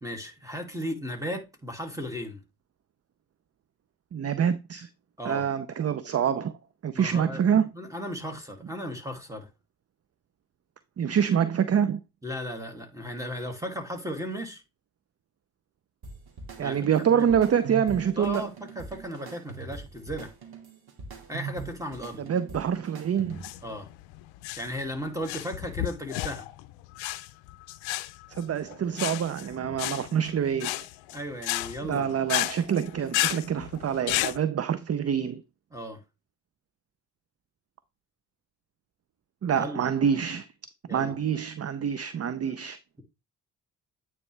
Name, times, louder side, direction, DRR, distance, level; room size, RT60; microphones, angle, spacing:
voice 1, 0.0-2.4 5.2-5.4 6.9-7.4 7.7-9.5 12.2-14.6 16.6-17.2 18.2-20.3 21.3-22.3 23.6-23.9 24.6-26.5 31.1-32.1 35.7-36.0 39.5-39.8 40.9-41.1, equal, 5° right, 2.4 m, -35 dB
voice 2, 4.1-4.9 5.2-6.5 6.8-7.7 11.0-12.0 16.6-18.5 22.2-23.4 28.3-30.7 31.8-35.4 39.4-40.5 40.9-42.8, right 8 dB, 35° right, 0.6 m, -26 dB
sound 1, 16.0-23.6, right 5 dB, 55° right, 2.2 m, -42 dB
sound 2, 23.3-34.4, left 18 dB, 90° left, 0.6 m, -32 dB
8.9 x 4.2 x 3.3 m
supercardioid pair, 50°, 45 cm